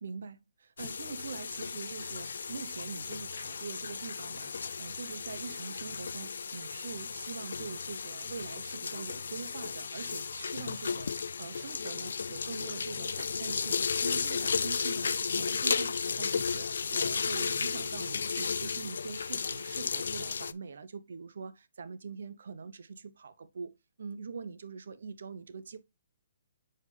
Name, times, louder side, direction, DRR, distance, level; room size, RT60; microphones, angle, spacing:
voice 1, 0.0-25.8, right 5 dB, 60° right, 0.8 m, -43 dB
sound 1, 0.8-20.5, left 5 dB, 75° left, 0.3 m, -34 dB
7.4 x 4.4 x 3.3 m
hypercardioid pair, 180°, 0 cm